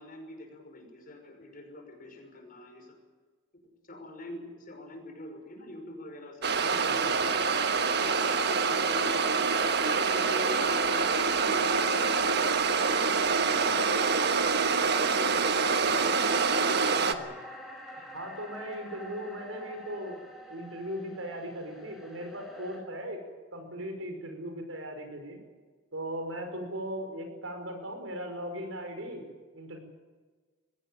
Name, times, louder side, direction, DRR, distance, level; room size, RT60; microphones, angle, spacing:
voice 1, 0.0-3.0 3.9-7.1 7.4-7.5 7.9-9.5 9.8-16.0 16.6-17.3 18.0-18.1, left 1 dB, 45° left, 4 dB, 5.7 m, -44 dB
sound 1, 6.4-17.1, right 5 dB, 55° right, 1.4 m, -26 dB
voice 2, 6.5-7.3 17.0-17.3 18.1-23.2 23.5-25.4 25.9-29.2 29.5-29.8, equal, 85° right, 6 dB, 5.4 m, -38 dB
sound 2, 9.1-22.8, equal, ahead, 4.8 m, -47 dB
22.0 x 17.0 x 9.1 m, 1.4 s
head